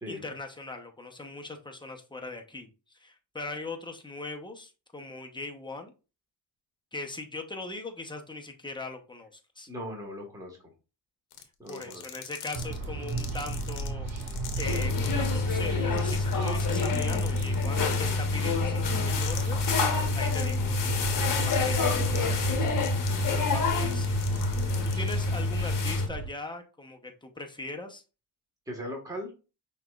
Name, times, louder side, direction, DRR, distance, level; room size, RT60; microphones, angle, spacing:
voice 1, 0.1-5.9 6.9-9.7 11.7-22.6 23.3-28.0, left 2 dB, 10° left, 4 dB, 0.8 m, -40 dB
voice 2, 9.7-10.6 11.6-12.0 22.1-22.4 28.7-29.3, equal, 5° right, 0 dB, 1.4 m, -38 dB
sound 1, 11.3-15.3 15.6-15.7 16.0-18.1 18.9-19.7 20.2-20.6 20.9-21.0 21.4-23.1 23.7-25.1, left 11 dB, 85° left, 1.0 m, -42 dB
sound 2, 12.5-26.3, right 4 dB, 65° right, 2.0 m, -36 dB
sound 3, 14.6-26.1, left 3 dB, 40° left, 1.0 m, -27 dB
5.8 x 3.2 x 2.3 m, 0.32 s
cardioid pair, 95°, 49 cm